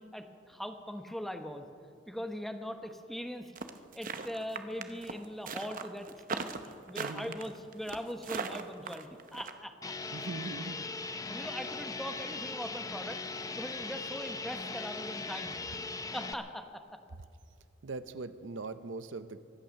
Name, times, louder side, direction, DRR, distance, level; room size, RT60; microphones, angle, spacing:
voice 1, 0.0-1.7 2.1-3.5 3.9-9.9 11.3-13.2 13.5-15.6 16.1-16.8, equal, ahead, 6 dB, 1.0 m, -41 dB
sound 1, 3.6-9.5, right 5 dB, 45° right, 0.8 m, -38 dB
voice 2, 7.0-7.4 10.1-10.9 17.8-19.4, right 3 dB, 80° right, 12 dB, 0.7 m, -41 dB
sound 2, 9.8-16.3, left 3 dB, 20° left, 0.6 m, -39 dB
24.0 x 8.8 x 6.4 m, 2.3 s
head